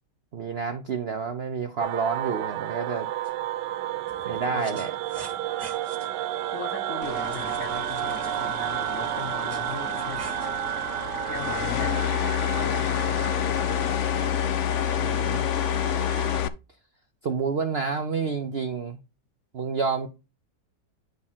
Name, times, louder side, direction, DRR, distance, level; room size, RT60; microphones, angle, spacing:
voice 1, 0.3-3.1 4.2-4.9 15.0-15.4 17.2-19.0 19.5-20.1, right 5 dB, 60° right, 0.6 m, -29 dB
sound 1, 1.8-16.4, right 12 dB, 85° right, 1.3 m, -32 dB
sound 2, 3.2-3.3 4.1-6.1 7.3-8.5 9.2-10.5, right 3 dB, 25° right, 1.1 m, -45 dB
voice 2, 4.5-4.9 6.5-10.3 11.3-12.0 12.6-13.7, left 6 dB, 55° left, 1.4 m, -39 dB
sound 3, 7.0-16.5, left 11 dB, 80° left, 0.6 m, -28 dB
10.5 x 3.6 x 4.3 m
omnidirectional pair, 1.9 m